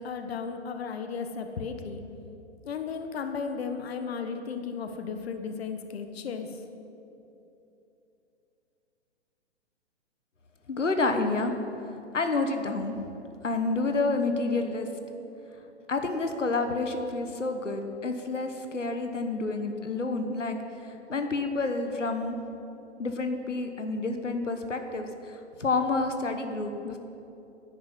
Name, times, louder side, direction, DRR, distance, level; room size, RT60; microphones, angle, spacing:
voice 1, 0.0-2.0 2.6-6.6, left 5 dB, 60° left, 7 dB, 1.2 m, -35 dB
voice 2, 10.7-11.5 12.1-12.9 13.4-14.9 15.9-22.4 23.0-27.0, left 3 dB, 90° left, 6 dB, 1.2 m, -29 dB
11.0 x 9.6 x 7.5 m, 2.9 s
figure-of-eight pair, 130°, 36 cm